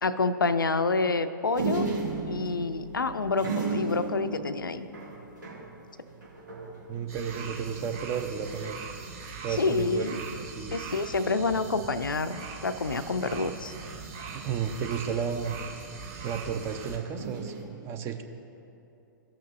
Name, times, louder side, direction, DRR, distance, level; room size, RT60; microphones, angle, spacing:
voice 1, 0.0-1.9 2.3-4.9 9.6-10.2 10.7-13.7, left 3 dB, 80° left, 11 dB, 0.4 m, -28 dB
sound 1, 1.5-7.5 7.9-8.0 8.2-8.7 9.6-10.2 11.5-12.0 13.6-14.9 17.2-17.7, right 4 dB, 65° right, 1.6 m, -35 dB
voice 2, 6.9-8.8 9.4-10.8 14.3-15.6 16.2-18.2, right 7 dB, 25° right, 6 dB, 0.5 m, -33 dB
sound 2, 7.1-17.0, right 5 dB, 40° right, 1.1 m, -41 dB
14.0 x 6.0 x 2.5 m, 2.8 s
figure-of-eight pair, 115°, 11 cm